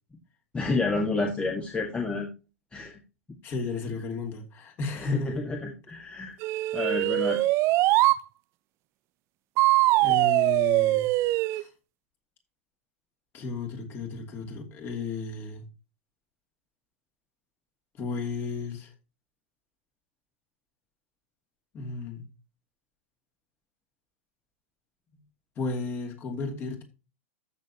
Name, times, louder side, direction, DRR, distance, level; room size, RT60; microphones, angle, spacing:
voice 1, 0.5-2.3 2.7-3.0 5.0-6.3 6.7-7.4, left 3 dB, 15° left, 1.7 m, -29 dB
voice 2, 3.4-5.3 10.0-11.1 11.5-11.7 13.3-15.6 18.0-18.9 21.7-22.3 25.6-26.8, left 3 dB, 30° left, 2.8 m, -33 dB
sound 1, 6.4-8.2 9.6-11.6, right 19 dB, 40° right, 0.5 m, -22 dB
14.0 x 6.7 x 2.9 m
figure-of-eight pair, 100°, 7 cm